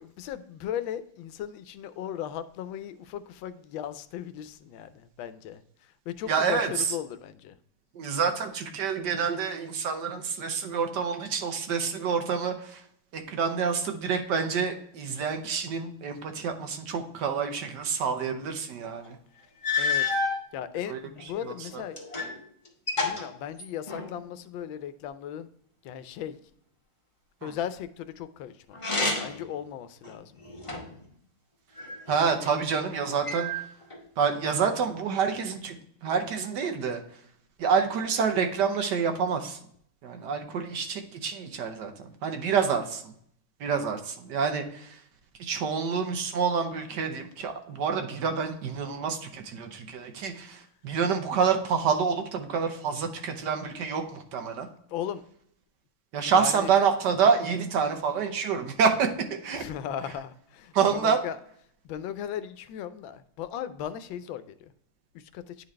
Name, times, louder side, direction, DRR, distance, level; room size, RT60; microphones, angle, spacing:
voice 1, 0.0-7.6 19.8-20.2 20.5-22.0 23.0-25.5 25.8-26.4 27.4-28.8 29.2-30.3 54.9-55.2 56.3-56.7 59.5-61.4 61.8-64.7 65.1-65.5, left 10 dB, 85° left, 13 dB, 1.3 m, -37 dB
voice 2, 6.3-6.8 7.9-12.8 13.1-19.2 20.9-21.0 27.4-27.5 32.1-33.5 34.2-37.0 37.6-39.6 40.0-43.1 43.6-45.0 45.4-54.7 56.1-59.7 60.7-61.2, right 6 dB, 65° right, 6 dB, 1.3 m, -27 dB
sound 1, 19.1-19.2 19.6-20.4 21.2-22.4 22.7-24.2 28.7-29.5 30.0-31.0 31.8-32.6 33.3-34.0, left 3 dB, 20° left, 0.9 m, -30 dB
9.9 x 4.0 x 3.1 m, 0.66 s
omnidirectional pair, 2.1 m